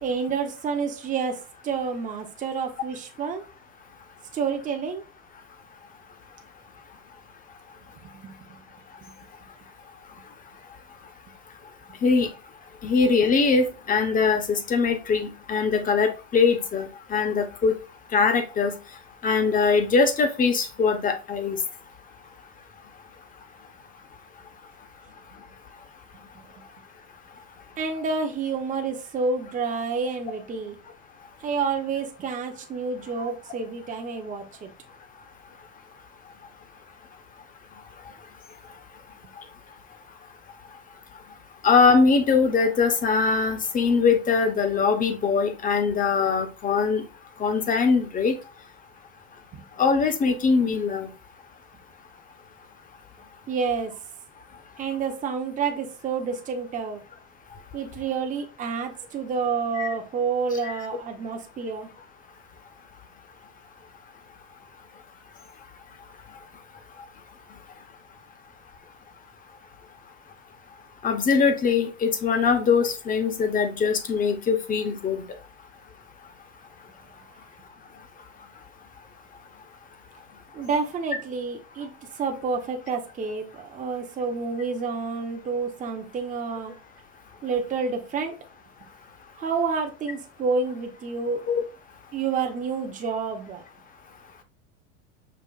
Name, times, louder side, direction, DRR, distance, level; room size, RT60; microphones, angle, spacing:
voice 1, 0.0-3.4 4.3-5.0 8.0-8.4 27.8-30.8 31.4-34.7 49.5-49.6 53.5-53.9 54.8-57.0 57.7-61.9 80.5-86.7 87.4-88.3 89.4-91.4 92.1-93.6, right 5 dB, 25° right, 4 dB, 0.7 m, -29 dB
voice 2, 12.8-17.7 18.1-18.7 19.2-21.6 33.2-33.3 41.6-47.0 47.4-48.4 49.8-51.1 59.8-59.9 60.6-60.8 71.0-75.2 91.5-91.6, left 5 dB, 25° left, 7 dB, 0.7 m, -22 dB
5.3 x 2.4 x 2.3 m, 0.32 s
hypercardioid pair, 100°, 34 cm